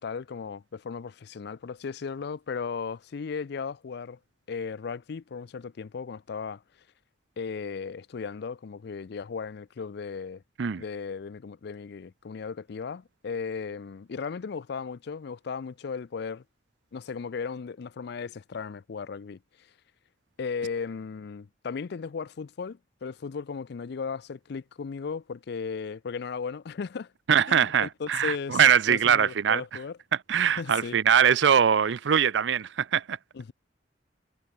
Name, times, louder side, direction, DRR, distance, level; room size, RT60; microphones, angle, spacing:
voice 1, 0.0-4.2 4.5-6.6 7.4-10.4 10.8-16.4 16.9-19.4 20.4-27.1 27.5-28.6 28.9-30.0 30.6-31.0 33.3-33.5, left 5 dB, 65° left, 0.4 m, -36 dB
voice 2, 27.3-29.6 30.3-33.2, right 8 dB, 75° right, 0.5 m, -22 dB
head